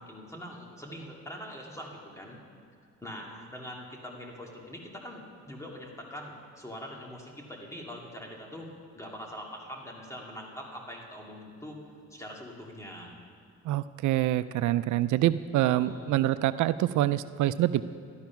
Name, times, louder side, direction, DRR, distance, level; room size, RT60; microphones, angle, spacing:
voice 1, 0.0-2.4 3.0-11.8 12.1-13.1 15.6-16.1, equal, 10° left, -1 dB, 2.3 m, -43 dB
voice 2, 13.7-17.8, right 14 dB, 75° right, 14 dB, 0.4 m, -26 dB
12.5 x 11.5 x 5.9 m, 2.2 s
cardioid pair, 90°, 30 cm